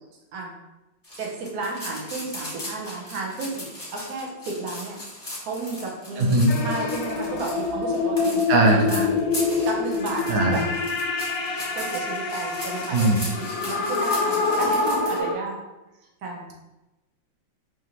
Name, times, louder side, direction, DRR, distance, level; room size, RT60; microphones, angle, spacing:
sound 1, 1.0-15.2, left 1 dB, 15° left, 0.8 m, -38 dB
voice 1, 1.2-5.0 5.4-9.1 9.7-10.6 11.7-15.6 16.2-16.5, right 3 dB, 60° right, -1 dB, 1.1 m, -33 dB
voice 2, 6.2-6.5 8.5-9.1 10.3-10.6 12.9-13.2, right 2 dB, 90° right, 1 dB, 1.5 m, -19 dB
sound 2, 6.5-15.3, left 4 dB, 75° left, 0.8 m, -26 dB
5.1 x 2.7 x 2.9 m, 1.0 s
omnidirectional pair, 2.2 m